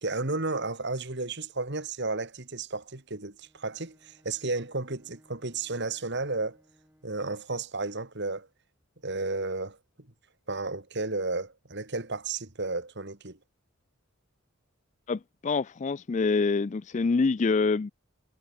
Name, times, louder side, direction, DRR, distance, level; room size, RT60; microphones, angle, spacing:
voice 1, 0.0-6.6 7.0-8.5 9.0-9.8 10.5-13.4, right 3 dB, 55° right, 2.4 m, -33 dB
Bowed string instrument, 3.4-7.5, equal, 10° right, 7.6 m, -64 dB
voice 2, 15.1-17.9, left 4 dB, 35° left, 0.4 m, -26 dB
head